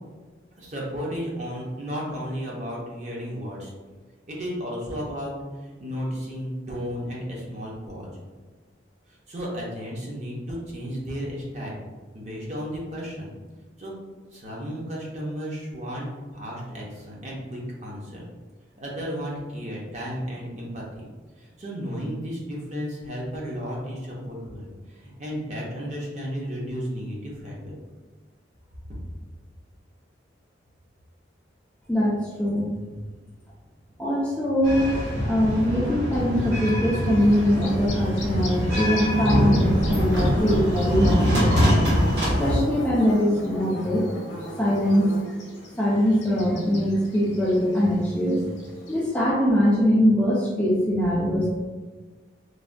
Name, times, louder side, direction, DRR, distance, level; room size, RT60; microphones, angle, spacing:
voice 1, 0.6-3.7 4.3-8.1 9.1-11.8 12.1-13.3 13.8-13.9 14.3-18.2 18.8-21.1 21.4-27.8, equal, 35° right, -4 dB, 0.6 m, -33 dB
voice 2, 31.9-32.7 34.0-34.9 35.2-41.7 42.4-44.1 44.6-45.1 45.8-48.4 48.9-51.5, equal, 5° left, -6 dB, 0.3 m, -22 dB
sound 1, 34.6-42.6, equal, 65° right, 0.9 m, -23 dB
Bird / Buzz, 36.1-49.0, left 1 dB, 75° left, 0.7 m, -39 dB
3.2 x 2.1 x 2.5 m, 1.3 s
head